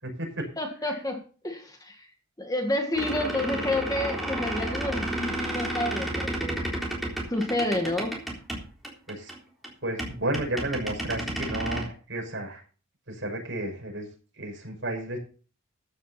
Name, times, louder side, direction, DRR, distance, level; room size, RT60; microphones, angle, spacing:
voice 1, 0.0-0.5 0.8-1.1 9.1-9.3 9.8-12.6 13.1-14.1 14.4-15.2, right 1 dB, 55° right, 0 dB, 6.1 m, -32 dB
voice 2, 0.6-2.1 2.4-6.6 7.3-8.2, left 1 dB, 15° left, 3 dB, 1.8 m, -29 dB
Creaky door, 2.9-9.4 9.6-9.7 10.0-11.8, right 1 dB, ahead, 3.7 m, -32 dB
14.5 x 9.9 x 4.2 m, 0.38 s
head